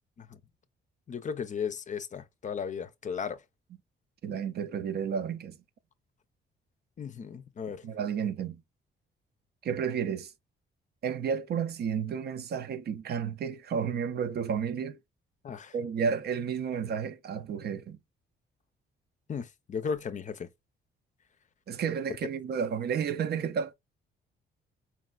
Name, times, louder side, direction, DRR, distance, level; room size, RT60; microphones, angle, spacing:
voice 1, 1.1-3.4 7.0-7.8 15.4-15.7 19.3-20.5, left 6 dB, 40° left, 0.5 m, -35 dB
voice 2, 4.2-5.6 7.8-8.6 9.6-10.3 11.0-15.0 15.7-18.0 21.7-23.7, right 7 dB, 55° right, 0.5 m, -31 dB
4.6 x 3.2 x 2.3 m
cardioid pair, 90°, 20 cm